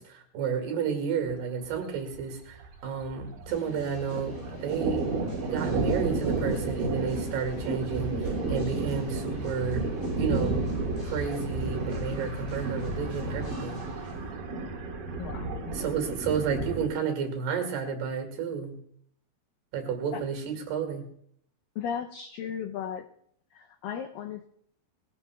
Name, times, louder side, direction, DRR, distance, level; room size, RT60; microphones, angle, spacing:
voice 1, 0.0-5.1 5.5-9.9 10.2-10.6 11.0-13.8 15.7-18.8 19.7-21.0, right 6 dB, 75° right, 4 dB, 3.9 m, -31 dB
Thunder, 1.3-1.4 1.7-1.8 2.1-3.6 3.9-16.9, right 3 dB, 60° right, 3.4 m, -31 dB
sound 1, 3.5-14.2, left 1 dB, 65° left, 9.7 m, -46 dB
voice 2, 15.2-15.7 20.1-20.2 21.8-23.1 23.5-24.5, left 8 dB, 85° left, 5 dB, 1.9 m, -36 dB
21.5 x 16.5 x 2.3 m, 0.67 s
omnidirectional pair, 4.7 m